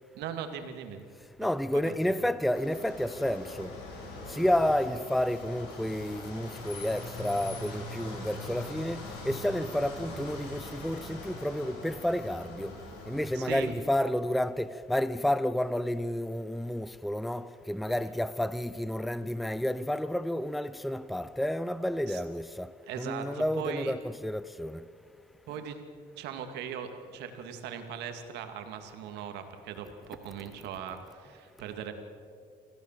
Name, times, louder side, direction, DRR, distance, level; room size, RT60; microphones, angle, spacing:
voice 1, 0.1-1.1 1.7-2.2 13.3-13.8 22.1-22.2 22.9-23.9 25.5-25.8 26.2-31.9, right 8 dB, 85° right, 2.4 m, -39 dB
voice 2, 1.4-3.7 4.3-12.7 13.1-22.7 23.0-24.8, left 1 dB, ahead, 0.6 m, -30 dB
sound 1, 2.5-13.6, left 2 dB, 90° left, 5.9 m, -42 dB
26.0 x 16.0 x 7.5 m
cardioid pair, 110°, 17 cm